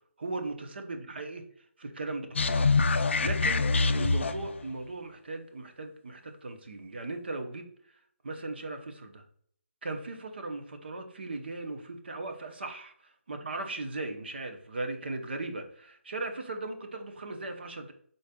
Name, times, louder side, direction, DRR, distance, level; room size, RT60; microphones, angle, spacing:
voice 1, 0.2-1.4 1.8-3.6 3.9-7.7 8.2-9.2 9.8-12.9 13.3-17.9, right 2 dB, 50° right, 5 dB, 0.7 m, -38 dB
sound 1, 2.4-4.6, left 3 dB, 60° left, 0.4 m, -25 dB
5.0 x 3.9 x 2.2 m, 0.63 s
hypercardioid pair, 175°, 7 cm